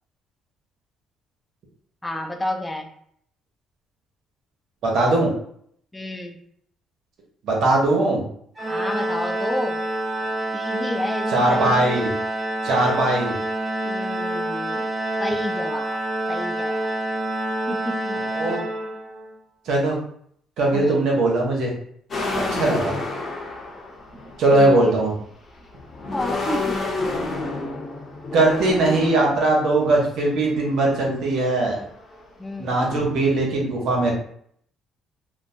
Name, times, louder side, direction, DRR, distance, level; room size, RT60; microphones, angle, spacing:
voice 1, 2.0-2.9 5.9-6.4 8.7-9.8 10.5-12.1 13.8-14.9 15.2-16.0 16.3-16.9 17.7-18.2 20.7-21.1 22.3-22.7 24.5-24.8 26.1-26.8 32.4-32.8, left 1 dB, 15° left, 4 dB, 0.5 m, -30 dB
voice 2, 4.8-5.3 7.4-8.2 11.3-12.1 12.6-13.4 18.4-18.6 19.7-20.0 20.6-21.7 22.5-22.9 24.4-25.1 28.3-31.8 32.6-34.1, right 2 dB, 70° right, -1 dB, 0.9 m, -20 dB
Organ, 8.6-19.3, right 1 dB, 35° right, 0.9 m, -27 dB
sound 1, 22.1-24.7 25.6-29.6 30.5-30.7 31.0-32.3 32.7-33.4, left 2 dB, 50° left, 0.8 m, -30 dB
2.9 x 2.1 x 2.6 m, 0.66 s
supercardioid pair, 65°, 0 cm